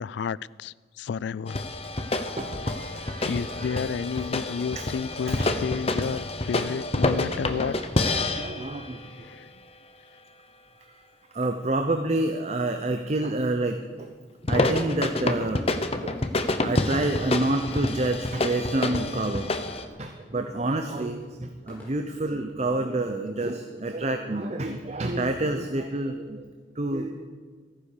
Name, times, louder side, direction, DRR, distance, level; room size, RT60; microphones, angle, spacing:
voice 1, 0.0-1.6 3.3-7.8 9.2-9.5, left 6 dB, 70° left, 0.3 m, -31 dB
sound 1, 1.5-9.1 14.4-19.8, left 2 dB, 30° left, 0.8 m, -28 dB
voice 2, 1.9-3.9 4.1-4.3 4.8-4.9 5.4-5.5 7.6-7.7 8.3-9.3 11.3-14.1 14.5-15.7 16.0-16.2 16.6-19.6 20.0-26.5 26.8-27.2, right 2 dB, 35° right, 0.7 m, -28 dB
sound 2, 17.0-22.7, left 1 dB, 10° left, 3.8 m, -52 dB
14.5 x 9.8 x 6.7 m
head